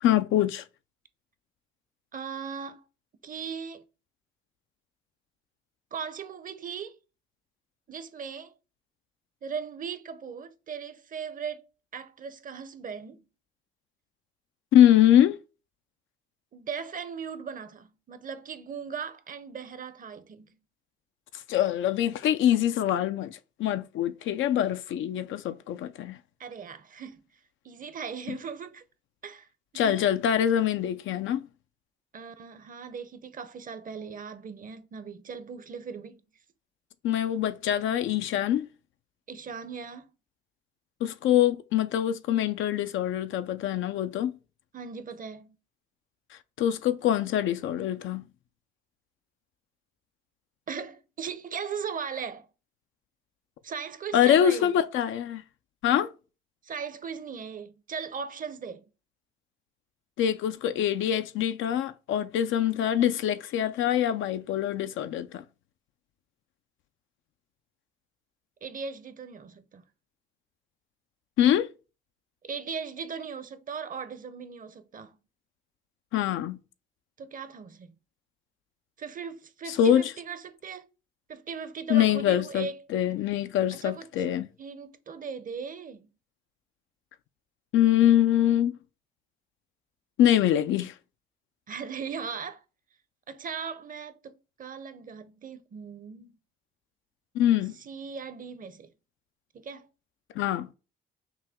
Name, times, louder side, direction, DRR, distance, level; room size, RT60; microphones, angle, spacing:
voice 1, 0.0-0.6 14.7-15.4 21.5-26.2 28.3-28.4 29.7-31.5 37.0-38.7 41.0-44.3 46.6-48.3 54.1-55.4 55.8-56.1 60.2-65.4 71.4-71.7 76.1-76.6 79.7-80.1 81.9-84.5 87.7-88.7 90.2-90.9 97.4-97.7 100.4-100.7, left 11 dB, 75° left, 0.4 m, -24 dB
voice 2, 2.1-2.8 3.2-3.8 5.9-7.0 7.9-8.5 9.4-11.7 11.9-13.2 16.5-20.6 26.4-27.2 27.6-28.8 29.2-29.5 29.7-30.0 32.1-36.2 39.3-40.1 44.7-45.6 50.7-52.5 53.6-54.7 56.6-58.8 68.6-69.8 72.4-75.2 77.2-77.9 79.0-80.8 81.3-82.9 83.7-84.3 84.6-86.1 91.7-92.6 93.3-96.3 97.8-98.9 99.5-99.9, right 6 dB, 45° right, 0.7 m, -38 dB
5.8 x 2.2 x 3.5 m
cardioid pair, 90°, 20 cm